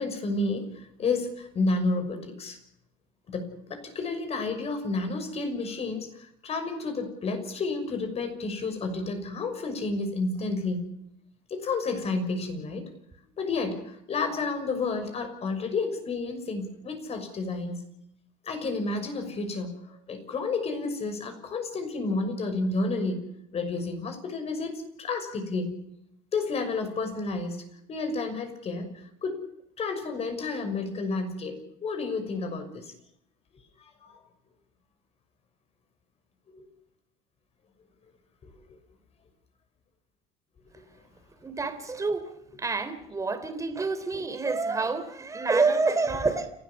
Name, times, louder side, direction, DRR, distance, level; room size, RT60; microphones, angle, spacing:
voice 1, 0.0-2.6 3.3-10.9 11.5-12.9 13.4-17.8 18.4-25.8 26.3-27.6 27.9-29.4 29.8-32.9 34.0-34.2 36.5-36.7 38.4-38.6 43.6-43.7, left 3 dB, 40° left, 7 dB, 6.2 m, -31 dB
voice 2, 41.4-42.3 42.6-46.5, right 3 dB, 20° right, 10 dB, 3.5 m, -27 dB
30.0 x 13.0 x 7.2 m, 0.75 s
supercardioid pair, 110°, 17 cm